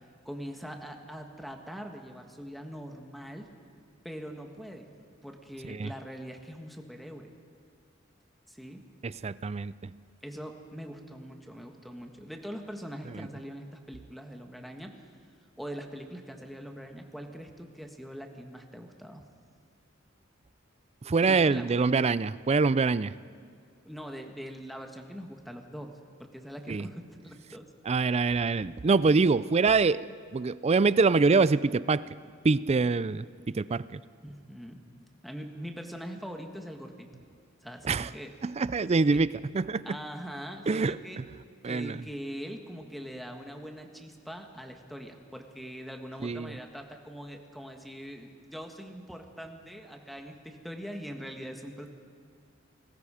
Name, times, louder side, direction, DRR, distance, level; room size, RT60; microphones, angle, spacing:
voice 1, 0.2-3.5 4.0-4.9 5.2-7.3 8.5-8.8 10.2-15.0 15.6-19.2 21.2-21.8 23.8-25.9 26.2-28.1 34.2-34.8 35.2-37.1 37.6-38.3 39.1-39.2 39.8-41.2 41.6-51.9, equal, ahead, 4 dB, 1.5 m, -42 dB
voice 2, 9.0-9.9 13.1-13.3 21.0-23.2 26.7-26.9 27.9-30.1 30.3-32.0 32.4-34.0 37.8-38.1 38.4-39.3 39.5-39.9 40.7-41.0 41.6-42.0 46.2-46.6, right 4 dB, 30° right, 18 dB, 0.4 m, -25 dB
28.5 x 19.5 x 5.0 m, 2.2 s
head